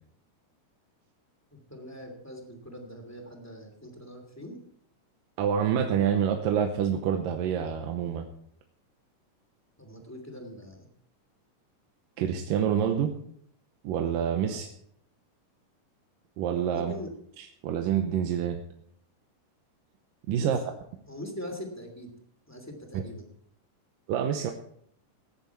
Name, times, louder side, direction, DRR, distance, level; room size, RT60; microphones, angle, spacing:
voice 1, 1.5-4.6 9.8-10.9 14.4-14.6 16.7-17.1 20.3-20.5 21.1-22.1 22.5-23.2, equal, 5° left, 2 dB, 2.2 m, -42 dB
voice 2, 5.4-8.3 12.2-13.1 13.8-14.7 16.4-16.9 17.4-18.6 20.3-20.6 22.9-23.0 24.1-24.5, right 8 dB, 90° right, 4 dB, 2.6 m, -27 dB
16.5 x 10.5 x 4.6 m, 0.66 s
omnidirectional pair, 3.8 m